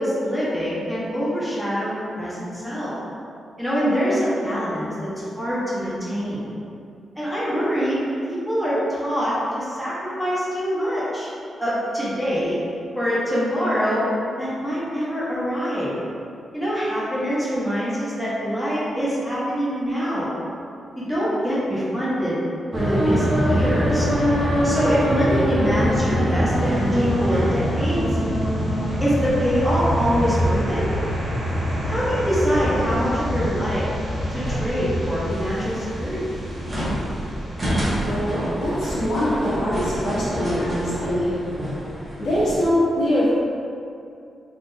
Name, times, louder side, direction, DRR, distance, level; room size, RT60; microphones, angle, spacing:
voice 1, 0.0-2.9 3.6-6.5 7.2-8.0 8.3-11.3 11.6-12.6 12.9-14.1 14.4-15.9 16.5-20.3 21.0-22.4 22.7-24.1 24.6-28.2 29.0-30.9 31.8-33.9 34.3-36.4, equal, ahead, -9 dB, 0.8 m, -24 dB
sound 1, 22.7-42.6, equal, 35° right, 0.9 m, -24 dB
sound 2, 26.5-40.4, equal, 80° right, 1.2 m, -37 dB
voice 2, 38.0-41.4 42.2-43.3, equal, 70° left, -10 dB, 1.2 m, -23 dB
3.6 x 2.4 x 2.6 m, 2.5 s
cardioid pair, 115°, 0 cm